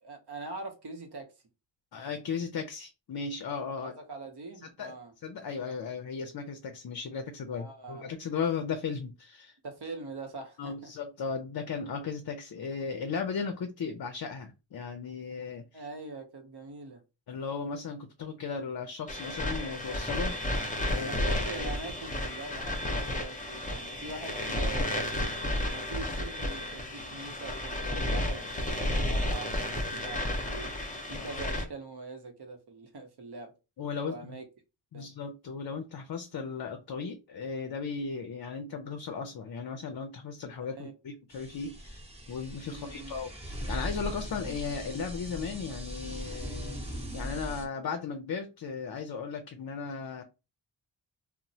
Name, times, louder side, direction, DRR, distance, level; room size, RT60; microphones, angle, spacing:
voice 1, 0.0-1.3 3.8-5.1 7.5-8.1 9.6-10.9 15.7-17.0 20.9-25.3 25.7-30.7 31.1-33.5 34.1-34.4 34.9-35.1 40.8-40.9 42.6-43.2, right 3 dB, 60° right, 0.8 m, -43 dB
voice 2, 1.9-3.9 4.6-4.9 5.2-9.6 10.6-15.9 17.3-20.4 20.8-21.1 31.3-31.4 33.8-34.4 34.9-42.0 42.3-50.2, left 5 dB, 55° left, 0.5 m, -36 dB
sound 1, 19.1-31.6, left 1 dB, 20° left, 0.6 m, -32 dB
sound 2, 41.3-47.6, equal, 15° right, 0.8 m, -39 dB
2.9 x 2.0 x 2.7 m
wide cardioid pair, 65°, 46 cm